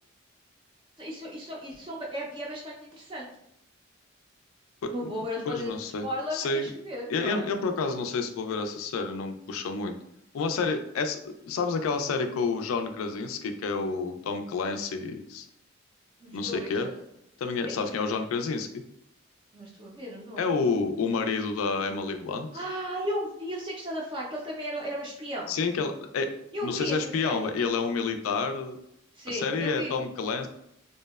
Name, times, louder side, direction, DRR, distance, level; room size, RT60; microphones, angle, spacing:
voice 1, 1.0-3.3 4.9-5.7 6.0-7.4 16.2-17.0 17.6-17.9 19.5-20.5 22.5-25.5 26.5-27.0 27.2-27.5 29.2-30.0, equal, 25° right, -3 dB, 0.3 m, -35 dB
voice 2, 5.5-6.7 7.1-10.0 10.3-15.5 16.3-16.9 17.4-18.8 20.4-22.5 25.5-26.3 26.6-28.8 29.3-30.5, left 4 dB, 85° left, 7 dB, 0.3 m, -29 dB
2.7 x 2.1 x 2.2 m, 0.76 s
head